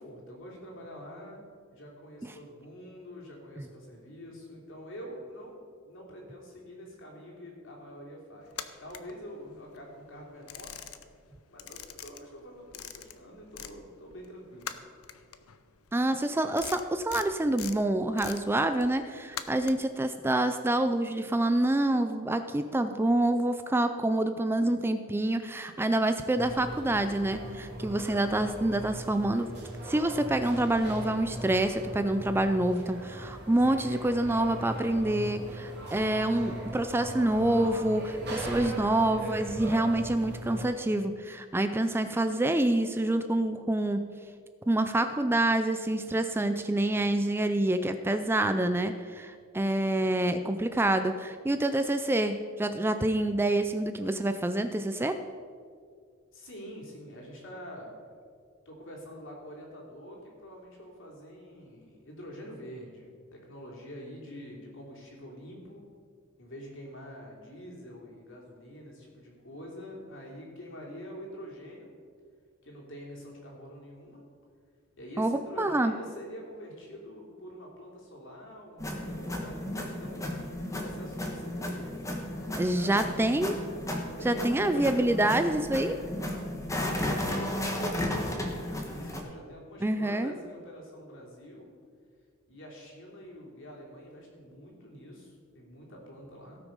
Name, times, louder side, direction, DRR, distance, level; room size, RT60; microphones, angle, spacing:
voice 1, 0.0-1.4 1.7-10.8 11.5-14.8 56.3-58.0 58.6-65.8 66.4-71.9 72.6-74.2 75.0-80.3 80.7-82.0 82.3-83.1 84.2-85.4 85.7-91.7 92.5-96.6, equal, 60° left, -2 dB, 3.0 m, -46 dB
sound 1, 8.5-9.8 10.1-11.3 11.5-13.8 14.1-20.0, left 9 dB, 85° left, 0.7 m, -43 dB
voice 2, 15.9-29.5 29.9-44.0 44.7-55.2 75.2-75.9 82.6-83.6 84.2-86.0 89.8-90.3, right 1 dB, 10° right, 9 dB, 0.3 m, -27 dB
sound 2, 26.3-40.7, right 1 dB, 50° right, 3.0 m, -39 dB
sound 3, 78.8-89.2, left 1 dB, 15° left, 1.3 m, -34 dB
17.0 x 6.2 x 5.3 m, 2.1 s
head